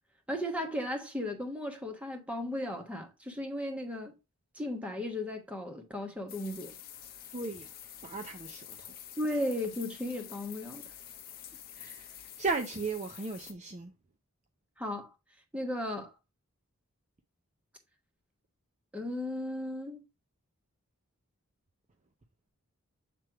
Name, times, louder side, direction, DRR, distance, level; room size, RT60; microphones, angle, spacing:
voice 1, 0.3-4.1 4.5-6.7 9.2-10.9 14.8-15.1 15.5-16.1 18.9-20.0, left 1 dB, 5° right, 1.2 m, -35 dB
sound 1, 6.3-13.5, left 10 dB, 40° left, 0.8 m, -48 dB
voice 2, 7.3-7.7 8.0-8.9 11.7-13.9, right 3 dB, 30° right, 0.5 m, -36 dB
7.6 x 3.3 x 4.6 m
head